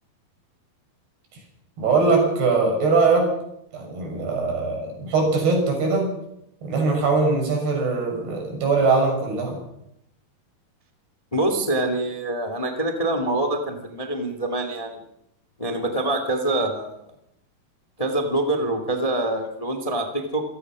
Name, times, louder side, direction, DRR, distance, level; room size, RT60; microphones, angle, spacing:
voice 1, 1.8-3.3 3.7-6.1 6.6-9.6, right 3 dB, 85° right, 2 dB, 8.5 m, -21 dB
voice 2, 11.3-15.0 15.6-17.0 18.0-20.4, right 1 dB, 15° left, 6 dB, 1.5 m, -25 dB
27.0 x 16.0 x 6.3 m, 0.79 s
omnidirectional pair, 4.5 m